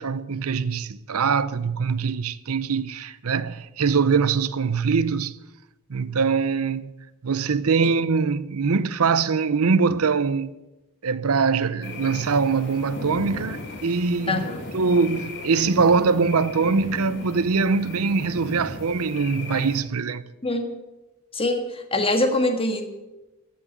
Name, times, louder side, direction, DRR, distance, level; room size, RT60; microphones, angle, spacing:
voice 1, 0.0-5.3 5.9-6.9 7.2-10.5 11.0-14.5 14.7-20.2, right 5 dB, 70° right, 0.7 m, -23 dB
Night Ambient Loop, 11.8-19.8, left 2 dB, 60° left, 2.5 m, -37 dB
voice 2, 14.3-14.7 20.4-20.7 21.3-22.8, left 2 dB, 25° left, 1.7 m, -24 dB
15.0 x 6.1 x 9.4 m
head